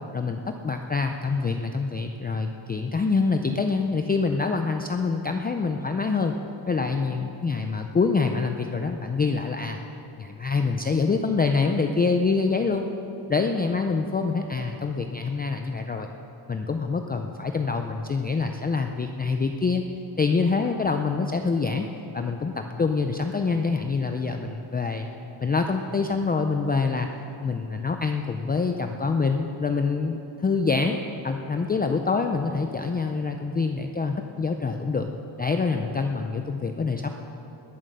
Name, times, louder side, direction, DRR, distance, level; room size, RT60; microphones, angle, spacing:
voice 1, 0.1-6.3 6.7-9.8 10.2-12.9 13.3-16.1 16.5-19.8 20.2-21.9 22.1-25.1 25.4-27.1 27.4-31.0 31.2-35.1 35.4-37.1, left 4 dB, 20° left, 5 dB, 0.4 m, -25 dB
20.5 x 7.4 x 6.7 m, 2.9 s
wide cardioid pair, 160°, 47 cm